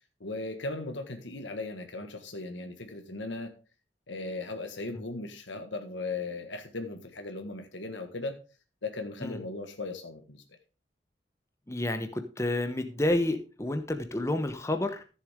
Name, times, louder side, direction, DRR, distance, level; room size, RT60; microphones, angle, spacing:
voice 1, 0.2-3.5 4.1-8.4 8.8-10.6, left 3 dB, 85° left, 5 dB, 1.7 m, -37 dB
voice 2, 11.7-15.0, left 1 dB, 15° left, 7 dB, 0.9 m, -30 dB
14.0 x 7.4 x 3.7 m, 0.34 s
head